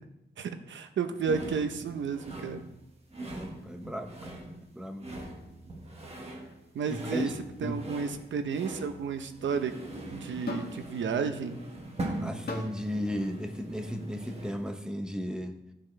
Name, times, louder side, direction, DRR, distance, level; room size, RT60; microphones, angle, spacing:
voice 1, 0.4-2.6 6.7-7.3 7.6-9.7 10.1-11.6, right 6 dB, 85° right, 8 dB, 0.8 m, -32 dB
sound 1, 1.2-14.7, right 1 dB, 35° right, 1.4 m, -42 dB
voice 2, 3.2-4.5 4.7-5.1 6.9-7.3 7.6-7.8 12.2-15.6, equal, 5° right, 6 dB, 0.7 m, -35 dB
sound 2, 10.5-10.8 12.5-12.8 13.8-14.0, left 3 dB, 60° left, 1.7 m, -37 dB
13.5 x 7.6 x 3.3 m, 0.88 s
wide cardioid pair, 160°, 19 cm